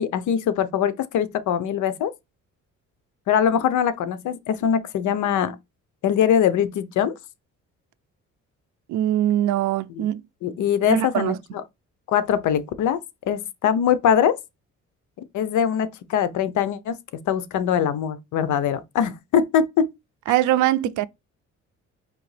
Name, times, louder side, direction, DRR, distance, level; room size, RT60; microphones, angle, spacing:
voice 1, 0.0-2.1 3.3-5.6 6.0-7.1 10.0-10.1 10.4-11.3 12.1-13.0 13.3-14.4 15.3-17.0 17.3-19.9, left 8 dB, 75° left, 0.7 m, -22 dB
voice 2, 8.9-10.2 10.9-11.4 20.3-21.1, right 13 dB, 80° right, 0.5 m, -22 dB
5.1 x 2.9 x 3.2 m
cardioid pair, 90°, 30 cm